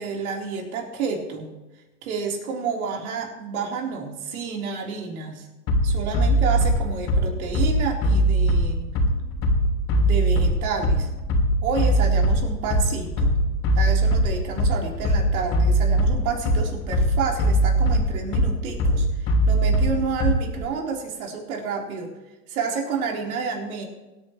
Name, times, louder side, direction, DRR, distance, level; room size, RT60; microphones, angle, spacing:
voice 1, 0.0-1.5 2.0-5.5 5.8-8.9 10.0-11.1 11.6-13.3 13.8-22.1 22.5-23.9, right 5 dB, 60° right, 0 dB, 4.0 m, -29 dB
Bass drum, 5.7-20.7, right 1 dB, 35° left, 3.1 m, -21 dB
24.5 x 9.5 x 3.2 m, 1.1 s
hypercardioid pair, 120°, 47 cm